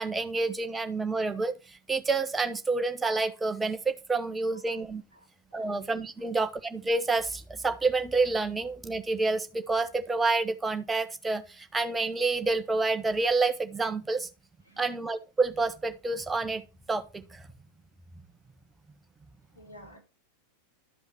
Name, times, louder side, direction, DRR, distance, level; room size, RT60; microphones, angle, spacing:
voice 1, 0.0-5.0 5.5-14.3 14.8-16.6 16.9-17.4, right 3 dB, 10° right, 1.0 m, -28 dB
voice 2, 4.5-4.8 5.1-5.8 6.2-6.3 14.6-14.9 19.5-20.0, equal, 80° left, 6.3 m, -53 dB
12.0 x 5.2 x 4.5 m
figure-of-eight pair, 90°, 0 cm